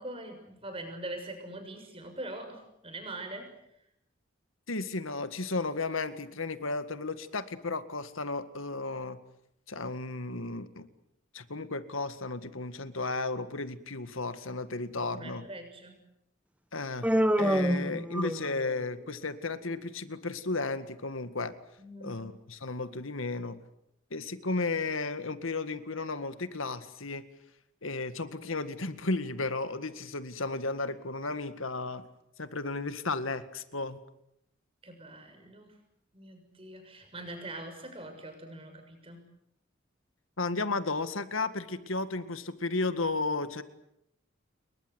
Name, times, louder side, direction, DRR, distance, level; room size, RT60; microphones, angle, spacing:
voice 1, 0.0-3.5 15.0-16.0 21.8-22.4 34.8-35.8 36.1-39.2, right 1 dB, 25° right, 5 dB, 6.6 m, -43 dB
voice 2, 4.7-9.2 9.7-10.9 11.3-15.4 16.7-17.1 17.4-21.5 22.0-23.6 24.1-27.2 27.8-32.0 32.4-34.0 40.4-43.6, left 3 dB, 85° left, 11 dB, 1.9 m, -34 dB
Human voice, 17.0-18.7, equal, 5° right, 1.0 m, -27 dB
29.5 x 22.0 x 8.2 m, 0.79 s
head